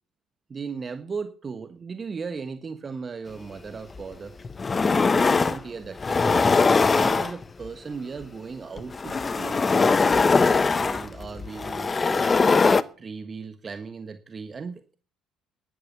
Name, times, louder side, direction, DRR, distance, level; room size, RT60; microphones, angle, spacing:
voice 1, 0.5-4.4 5.2-9.6 10.4-12.7 13.0-15.0, right 5 dB, 35° right, 9 dB, 1.3 m, -37 dB
sound 1, 3.9-4.0 4.4-5.6 6.0-7.7 8.8-12.8, left 4 dB, 30° left, 0.8 m, -21 dB
11.5 x 11.0 x 7.3 m, 0.40 s
hypercardioid pair, 60°, 0 cm